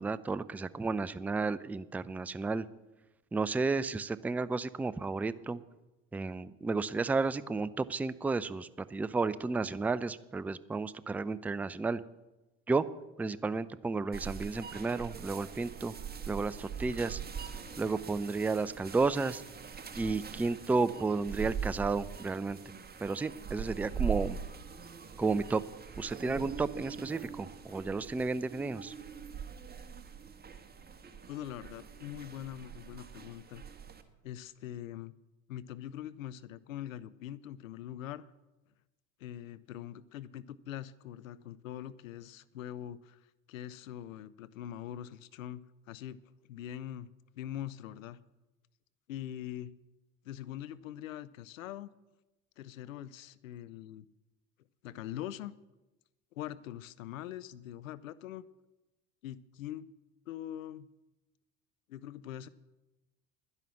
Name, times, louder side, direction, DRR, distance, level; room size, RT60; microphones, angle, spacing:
voice 1, 0.0-2.7 3.3-5.6 6.1-12.0 12.7-12.9 13.2-15.9 16.3-17.2 17.8-19.4 20.0-22.6 23.0-24.4 25.2-25.6 26.0-28.9, right 3 dB, 5° right, 16 dB, 0.3 m, -32 dB
sound 1, 14.1-34.0, right 7 dB, 25° right, 1.5 m, -42 dB
voice 2, 31.3-33.6 34.2-35.1 35.5-38.3 39.2-47.1 47.4-48.2 49.1-49.7 50.2-51.9 52.6-54.1 54.8-55.5 56.3-58.4 59.2-59.9 60.3-60.9 61.9-62.5, left 11 dB, 85° left, 16 dB, 0.6 m, -43 dB
11.0 x 10.5 x 7.1 m, 1.0 s
hypercardioid pair, 70°, 39 cm